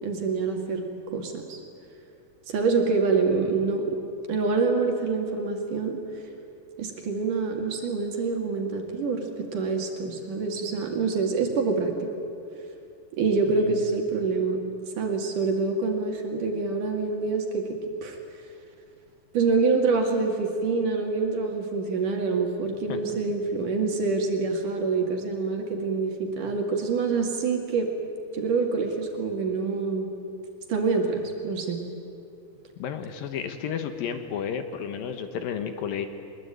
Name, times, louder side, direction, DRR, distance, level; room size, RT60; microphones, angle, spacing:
voice 1, 0.0-0.8 1.1-1.6 2.5-4.0 4.3-6.0 6.8-12.1 13.1-14.6 14.9-18.2 19.3-27.9 28.3-30.1 30.7-31.8, right 4 dB, 50° right, 2 dB, 3.2 m, -26 dB
voice 2, 13.5-13.8 22.9-23.0 32.8-36.1, left 7 dB, 75° left, 8 dB, 2.2 m, -32 dB
24.0 x 21.0 x 9.1 m, 2.6 s
omnidirectional pair, 5.5 m